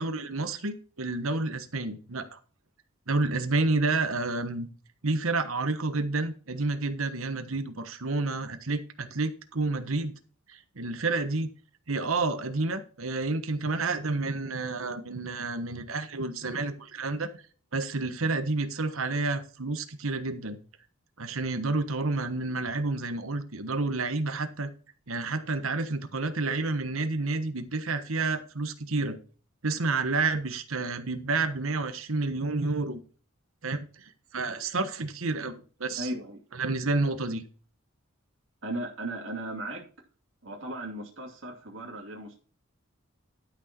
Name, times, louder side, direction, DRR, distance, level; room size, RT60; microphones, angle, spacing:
voice 1, 0.0-2.4 3.1-4.7 5.0-10.1 10.5-11.5 11.9-17.3 17.7-20.6 21.2-24.7 25.1-29.2 29.6-33.0 33.6-35.5 35.8-36.1 36.5-37.4, right 3 dB, 80° right, 10 dB, 1.3 m, -30 dB
voice 2, 36.0-36.4 38.6-39.9 40.4-42.4, right 1 dB, 65° right, -2 dB, 2.5 m, -36 dB
12.0 x 6.4 x 4.4 m, 0.39 s
head